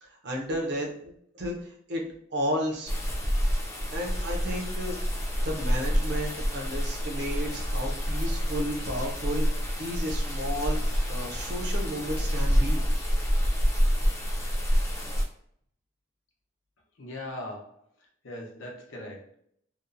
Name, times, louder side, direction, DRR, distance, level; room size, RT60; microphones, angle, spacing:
voice 1, 0.0-2.9 3.9-12.8, equal, 60° right, 0 dB, 0.6 m, -33 dB
sound 1, 2.9-15.2, equal, 15° left, 0.3 m, -27 dB
voice 2, 17.0-17.8 18.2-19.3, left 1 dB, 85° left, 0 dB, 0.7 m, -40 dB
2.8 x 2.0 x 2.5 m, 0.66 s
head